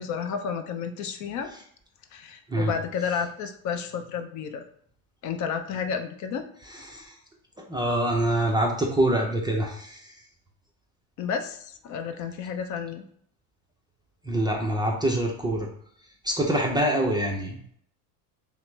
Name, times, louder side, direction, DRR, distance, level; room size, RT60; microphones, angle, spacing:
voice 1, 0.0-1.5 2.1-4.6 5.2-6.5 11.2-13.0, left 6 dB, 45° left, 7 dB, 0.5 m, -31 dB
voice 2, 6.7-7.1 7.7-10.2 14.2-15.7 16.2-17.6, right 1 dB, 10° right, -1 dB, 0.4 m, -25 dB
5.7 x 2.1 x 3.1 m, 0.63 s
supercardioid pair, 110°, 44 cm